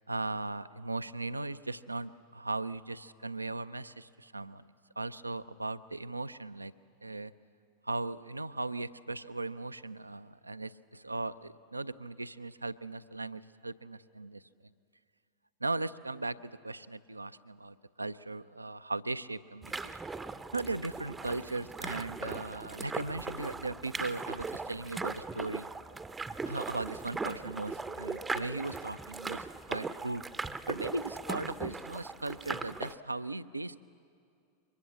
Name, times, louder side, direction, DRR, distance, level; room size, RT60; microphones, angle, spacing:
voice 1, 0.1-4.6 5.0-6.7 7.0-7.3 7.8-14.4 15.6-20.0 20.5-25.7 26.5-30.3 30.7-33.8, right 2 dB, 85° right, 14 dB, 0.5 m, -38 dB
sound 1, 19.6-32.9, right 3 dB, 10° right, 0.7 m, -39 dB
23.5 x 21.5 x 7.3 m, 2.4 s
figure-of-eight pair, 90°, 0 cm